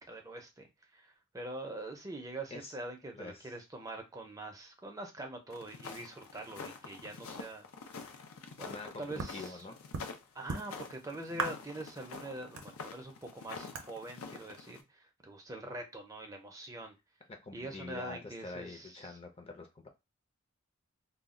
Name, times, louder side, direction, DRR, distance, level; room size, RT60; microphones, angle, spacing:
voice 1, 0.1-0.7 0.9-7.7 8.6-9.6 10.3-16.9 17.5-19.1, right 2 dB, 15° right, 3 dB, 0.5 m, -44 dB
voice 2, 3.1-3.5 8.6-9.8 17.4-19.9, left 3 dB, 30° left, 4 dB, 0.5 m, -45 dB
sound 1, 5.5-14.8, left 5 dB, 80° left, 0.5 m, -47 dB
sound 2, 9.2-9.4 9.9-10.1 10.5-11.0 11.4-11.8 12.1-12.2 12.6-13.3 13.7-13.9, right 4 dB, 80° right, 0.5 m, -37 dB
2.2 x 2.1 x 3.7 m, 0.23 s
head